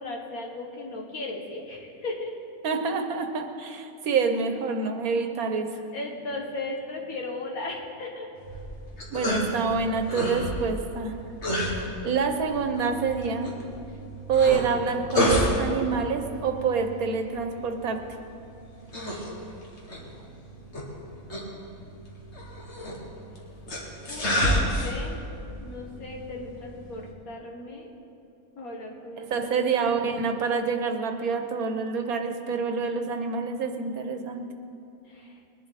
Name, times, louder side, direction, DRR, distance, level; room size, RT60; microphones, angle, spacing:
voice 1, 0.0-2.3 5.9-8.3 19.9-20.6 24.0-25.3 25.6-27.9 28.6-30.2 35.1-35.4, left 2 dB, 75° left, 0 dB, 2.1 m, -37 dB
voice 2, 2.6-5.7 9.1-11.1 11.8-13.5 14.3-18.0 29.2-34.4, right 5 dB, 90° right, 6 dB, 1.5 m, -27 dB
sound 1, 8.4-27.1, equal, 50° left, 2.2 m, -31 dB
21.5 x 11.0 x 4.2 m, 2.6 s
omnidirectional pair, 1.5 m